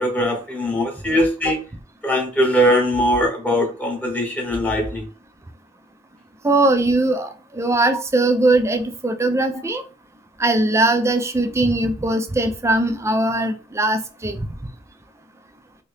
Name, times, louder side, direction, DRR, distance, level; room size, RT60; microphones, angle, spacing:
voice 1, 0.0-1.6 2.0-5.1 9.5-9.7 13.3-13.5, equal, 5° left, 0.8 m, -21 dB
voice 2, 6.4-9.8 10.4-14.4, right 2 dB, 15° right, 0.4 m, -20 dB
2.8 x 2.7 x 3.3 m
head